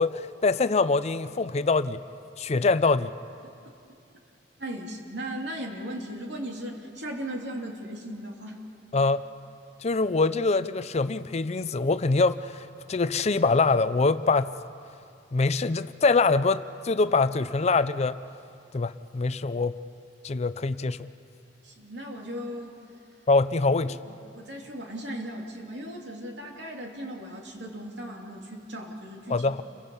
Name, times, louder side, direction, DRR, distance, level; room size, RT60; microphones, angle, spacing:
voice 1, 0.0-2.0 2.4-3.1 8.9-9.2 9.8-14.5 15.3-18.2 18.7-19.8 20.2-21.1 23.3-24.0 29.3-29.6, left 3 dB, 35° left, 14 dB, 0.5 m, -24 dB
voice 2, 4.6-8.6 21.6-22.8 24.0-29.6, equal, 75° right, 0 dB, 3.0 m, -37 dB
29.5 x 23.5 x 5.5 m, 2.5 s
head